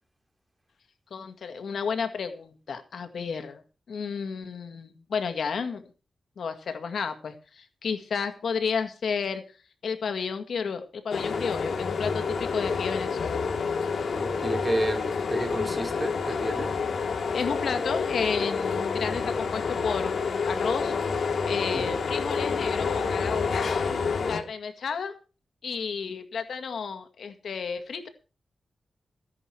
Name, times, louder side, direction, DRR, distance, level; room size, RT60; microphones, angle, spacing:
voice 1, 1.1-3.6 3.9-5.8 6.4-9.4 9.8-13.4 17.3-20.1 20.4-21.0 21.5-23.7 24.3-25.1 25.6-28.1, left 6 dB, 90° left, 2.0 m, -32 dB
sound 1, 11.1-24.4, left 5 dB, 75° left, 2.6 m, -28 dB
voice 2, 14.0-16.7 21.7-21.9, right 1 dB, 15° right, 2.9 m, -31 dB
15.5 x 11.0 x 4.7 m
wide cardioid pair, 130°, 0 cm